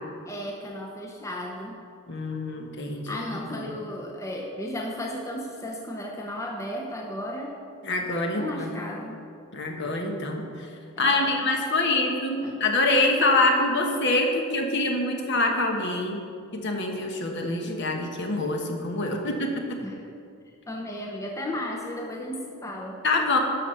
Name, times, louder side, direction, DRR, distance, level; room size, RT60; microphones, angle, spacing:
voice 1, 0.3-1.8 3.1-7.6 8.3-9.2 11.0-11.5 12.4-12.6 19.1-19.3 19.8-20.1 20.7-23.0, left 1 dB, 15° left, 0 dB, 0.7 m, -34 dB
voice 2, 2.1-3.2 3.6-3.7 7.8-8.7 9.5-10.4 11.0-16.2 16.5-19.8 23.0-23.4, left 2 dB, 55° left, 2 dB, 1.2 m, -25 dB
12.0 x 6.2 x 5.6 m, 2.5 s
head